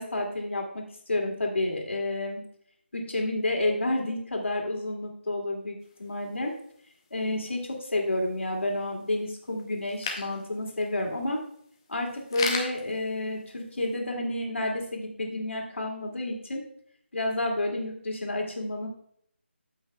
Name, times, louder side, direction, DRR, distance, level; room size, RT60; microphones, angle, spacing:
voice 1, 0.0-2.4 2.9-6.5 7.1-11.4 11.9-16.6 17.1-18.9, left 1 dB, 80° left, 1 dB, 2.4 m, -30 dB
sound 1, 5.8-14.0, left 4 dB, 20° left, 0.7 m, -40 dB
14.0 x 5.7 x 2.3 m, 0.64 s
figure-of-eight pair, 175°, 7 cm